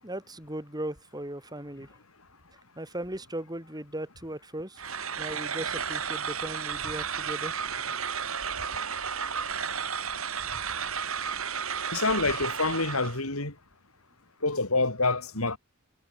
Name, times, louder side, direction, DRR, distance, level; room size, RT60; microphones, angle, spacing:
voice 1, 0.0-1.9 2.8-4.8 5.2-7.5 7.8-8.0, right 1 dB, 20° right, 8.0 m, -37 dB
sound 1, 4.8-13.2, right 6 dB, 75° right, 5.7 m, -33 dB
voice 2, 11.9-13.5 14.4-15.6, left 3 dB, 85° left, 5.7 m, -27 dB
head